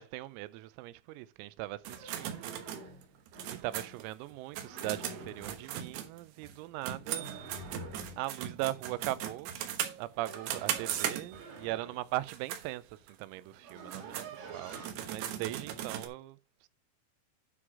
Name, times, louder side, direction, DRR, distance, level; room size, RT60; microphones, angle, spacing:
voice 1, 0.0-2.5 3.6-7.3 8.2-9.5 10.0-16.7, right 17 dB, 90° right, 3.4 m, -39 dB
sound 1, 1.8-3.9 4.6-5.7 7.1-8.3 9.8-12.1 13.0-13.1 13.3-14.9, right 3 dB, 50° right, 3.5 m, -48 dB
sound 2, 1.9-6.5 6.8-11.6 12.1-12.7 13.1-13.2 13.7-16.1, right 10 dB, 70° right, 2.8 m, -38 dB
9.6 x 6.2 x 4.7 m
omnidirectional pair, 5.9 m